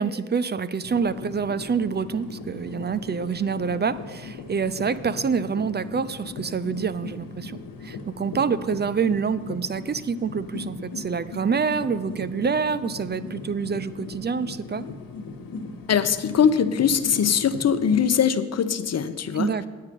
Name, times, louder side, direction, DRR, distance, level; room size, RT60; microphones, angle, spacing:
voice 1, 0.0-14.9 19.3-19.7, right 6 dB, 30° right, 15 dB, 0.5 m, -27 dB
sound 1, 0.8-18.0, left 4 dB, 65° left, 1.3 m, -38 dB
voice 2, 15.9-19.5, left 7 dB, 45° left, 11 dB, 0.8 m, -21 dB
9.4 x 8.4 x 5.2 m, 1.4 s
supercardioid pair, 50°, 36 cm